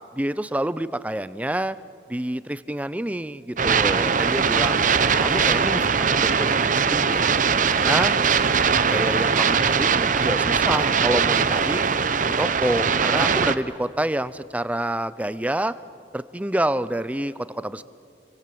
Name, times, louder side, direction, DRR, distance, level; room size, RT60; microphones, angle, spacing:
voice 1, 0.1-1.8 2.1-4.8 5.2-7.3 7.6-8.1 8.9-11.8 12.3-15.7 16.1-17.8, right 1 dB, 10° right, 15 dB, 0.5 m, -27 dB
sound 1, 3.6-13.6, right 6 dB, 45° right, 0.8 m, -21 dB
28.5 x 24.0 x 7.7 m, 2.6 s
head